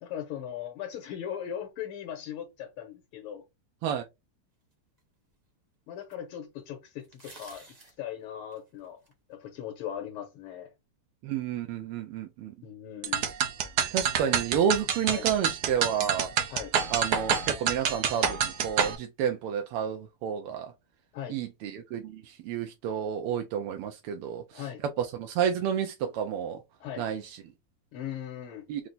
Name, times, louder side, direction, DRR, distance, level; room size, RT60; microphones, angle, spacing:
voice 1, 0.0-3.4 5.9-7.6 8.0-9.0 9.3-10.7 12.6-13.2 15.1-15.3 16.5-16.7 21.1-21.4 24.5-24.8 26.8-27.1 27.9-28.7, left 10 dB, 85° left, 1.7 m, -39 dB
sound 1, 5.0-5.1 6.1-6.2 7.0-8.0 8.5-9.1, right 2 dB, 30° right, 0.7 m, -51 dB
voice 2, 11.2-12.5 13.9-16.3 16.9-20.7 21.3-24.6 25.0-26.6 27.0-27.4 28.7-28.8, right 8 dB, 90° right, 1.5 m, -30 dB
sound 2, 13.0-19.0, right 7 dB, 70° right, 0.9 m, -27 dB
4.5 x 2.0 x 3.9 m
omnidirectional pair, 2.4 m